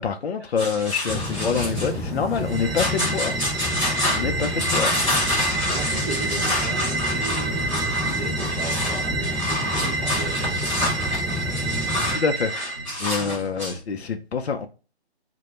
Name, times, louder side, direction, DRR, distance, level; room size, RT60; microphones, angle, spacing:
voice 1, 0.0-3.4 4.1-4.9 12.1-14.7, left 6 dB, 70° left, 0.5 m, -26 dB
sound 1, 0.6-13.8, left 1 dB, 30° left, 0.9 m, -28 dB
sound 2, 1.1-12.2, left 1 dB, ahead, 0.4 m, -30 dB
sound 3, 2.4-12.9, right 3 dB, 65° right, 0.5 m, -30 dB
voice 2, 5.7-11.0 13.1-13.4, right 2 dB, 30° right, 0.8 m, -36 dB
2.1 x 2.1 x 3.0 m
figure-of-eight pair, 180°, 33 cm